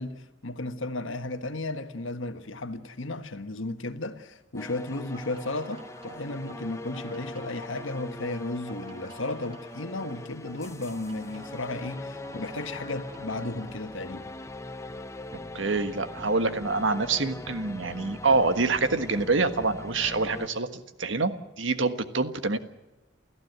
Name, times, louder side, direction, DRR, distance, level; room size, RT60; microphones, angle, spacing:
voice 1, 0.0-14.3, left 2 dB, 85° left, 1.5 m, -34 dB
sound 1, 4.6-20.5, left 2 dB, 15° left, 0.7 m, -41 dB
sound 2, 5.0-13.9, right 3 dB, 25° right, 3.1 m, -50 dB
voice 2, 15.5-21.3 21.6-22.6, right 3 dB, 80° right, 1.5 m, -26 dB
29.0 x 14.5 x 8.1 m
head